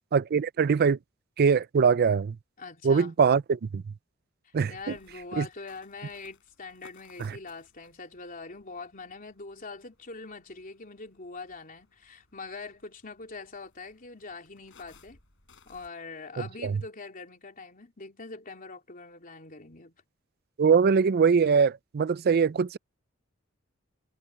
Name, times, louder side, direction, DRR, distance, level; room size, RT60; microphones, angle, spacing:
voice 1, 0.1-1.0 1.4-2.4 2.8-3.8 4.5-4.9 5.4-5.5 7.2-7.3 16.6-16.8 20.6-22.8, right 6 dB, 50° right, 0.4 m, -22 dB
voice 2, 2.6-3.1 4.4-15.2 15.6-20.0, left 4 dB, 40° left, 3.3 m, -43 dB
sound 1, 4.8-15.9, left 4 dB, 65° left, 6.8 m, -62 dB
head